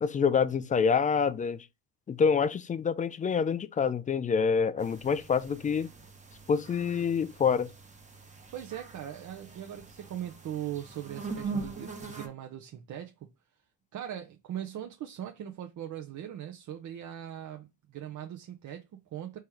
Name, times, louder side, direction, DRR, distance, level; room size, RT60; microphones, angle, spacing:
voice 1, 0.0-1.6 2.1-5.9 6.5-7.7, left 6 dB, 20° left, 0.3 m, -26 dB
sound 1, 4.8-12.3, right 4 dB, 15° right, 1.1 m, -42 dB
voice 2, 8.5-13.3 13.9-19.4, right 11 dB, 45° right, 0.7 m, -40 dB
4.3 x 3.2 x 3.4 m
supercardioid pair, 75°, 42 cm